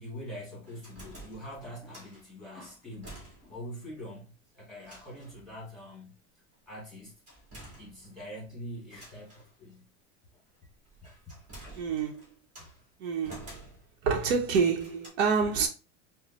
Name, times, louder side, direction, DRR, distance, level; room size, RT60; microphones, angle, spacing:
voice 1, 0.0-6.2 6.7-7.1 7.8-9.9 11.0-11.7 12.6-12.7, equal, ahead, 1.7 m, -44 dB
sound 1, 0.7-2.2 2.6-3.7 4.0-4.1 4.8-5.4 7.3-8.4 8.9-9.5 10.6-12.8 13.2-14.1 14.4-15.1, right 1 dB, 20° right, 1.6 m, -50 dB
voice 2, 11.7-12.2 13.0-13.5 14.0-15.7, right 5 dB, 65° right, 0.9 m, -27 dB
4.7 x 2.1 x 2.9 m
supercardioid pair, 160°, 35 cm